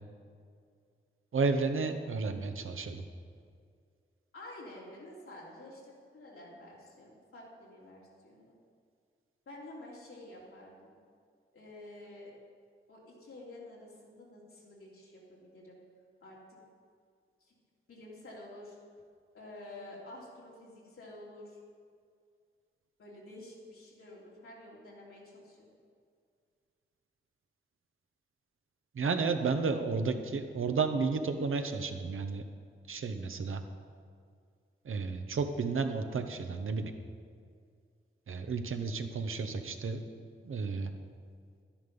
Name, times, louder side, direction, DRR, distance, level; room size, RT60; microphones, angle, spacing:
voice 1, 1.3-3.0 28.9-32.4 32.9-33.6 34.8-36.9 38.3-40.0 40.4-40.9, right 4 dB, 75° right, 7 dB, 1.0 m, -32 dB
voice 2, 4.3-8.5 9.5-10.9 11.5-12.3 12.9-15.8 16.2-16.6 17.4-17.5 17.9-18.8 19.3-21.6 23.0-25.7, left 1 dB, 85° left, -5 dB, 3.1 m, -50 dB
11.5 x 10.5 x 5.4 m, 2.2 s
cardioid pair, 60°, 21 cm